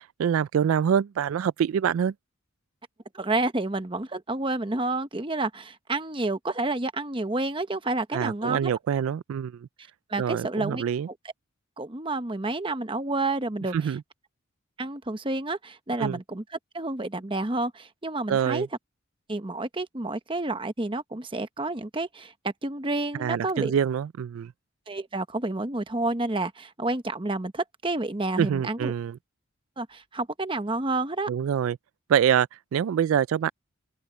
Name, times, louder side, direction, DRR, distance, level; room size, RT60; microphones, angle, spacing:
voice 1, 0.0-2.1 8.1-9.7 10.2-11.1 13.7-14.0 16.0-16.2 18.3-18.7 23.2-24.5 28.4-29.2 31.3-31.8 32.1-33.5, right 8 dB, 80° right, 0.3 m, -25 dB
voice 2, 3.1-8.7 10.1-10.8 11.8-13.9 14.8-16.4 16.7-18.7 19.3-23.8 24.9-28.9 29.8-31.3, right 2 dB, 25° right, 1.0 m, -29 dB
open air
head